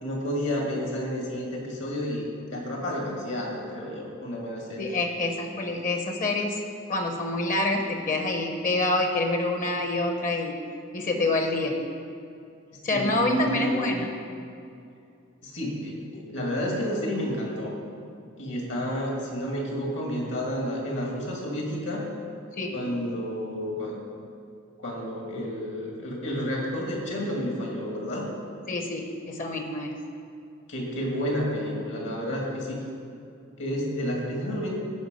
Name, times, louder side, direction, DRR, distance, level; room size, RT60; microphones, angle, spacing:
voice 1, 0.0-4.9 12.9-13.9 15.4-17.7 18.4-22.0 22.7-24.0 24.8-28.3 30.7-32.8 33.6-34.7, equal, 70° left, -1 dB, 2.2 m, -31 dB
voice 2, 4.8-6.6 6.9-10.6 10.9-11.8 12.8-14.1 22.6-22.8 28.7-30.0, left 2 dB, 45° left, 3 dB, 0.9 m, -27 dB
14.0 x 4.8 x 5.2 m, 2.5 s
head